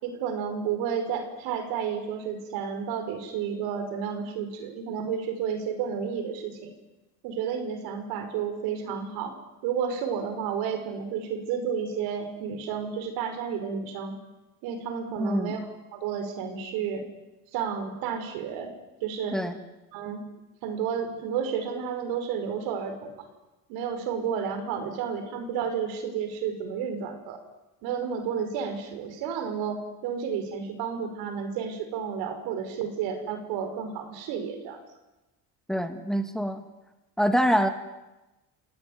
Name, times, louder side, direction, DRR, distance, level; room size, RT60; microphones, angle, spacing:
voice 1, 0.0-6.7 7.2-9.4 9.6-14.2 14.6-15.6 15.9-17.0 17.5-18.7 19.0-19.4 19.9-20.2 20.6-23.1 23.7-27.4 27.8-34.8, right 7 dB, 90° right, 7 dB, 5.7 m, -31 dB
voice 2, 15.2-15.6 19.3-19.5 35.7-36.7 37.2-37.7, equal, ahead, 7 dB, 2.1 m, -25 dB
29.5 x 18.0 x 9.7 m, 1.0 s
cardioid pair, 130°, 35 cm